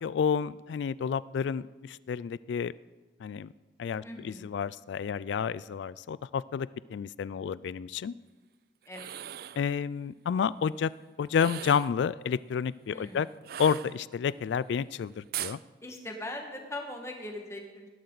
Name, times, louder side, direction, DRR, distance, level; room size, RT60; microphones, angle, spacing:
voice 1, 0.0-2.7 3.2-3.5 3.8-8.1 9.6-10.9 11.2-13.3 13.6-15.6, left 7 dB, 75° left, 20 dB, 0.3 m, -30 dB
voice 2, 4.0-4.5 8.9-9.2 12.9-13.3 15.8-17.9, left 1 dB, 15° left, 2 dB, 1.6 m, -40 dB
sound 1, 8.8-9.6 11.3-12.0 13.4-14.3 15.3-15.6, right 11 dB, 55° right, 0.3 m, -39 dB
18.5 x 12.0 x 4.0 m, 1.3 s
head